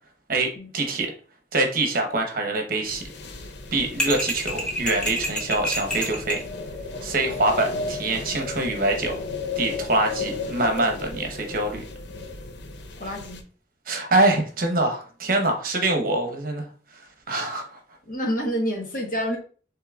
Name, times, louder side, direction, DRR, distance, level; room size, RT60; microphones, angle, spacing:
voice 1, 0.3-1.1 1.5-3.0 3.7-6.4 7.0-9.1 9.6-11.8 13.9-16.7 17.3-17.8, right 2 dB, 50° right, 3 dB, 1.0 m, -24 dB
sound 1, 2.8-13.4, left 3 dB, 70° left, 0.7 m, -34 dB
sound 2, 4.0-6.5, left 1 dB, 5° left, 0.9 m, -28 dB
voice 2, 13.0-13.4 18.1-19.4, equal, 45° left, 1 dB, 1.2 m, -28 dB
6.7 x 3.2 x 2.4 m, 0.40 s
head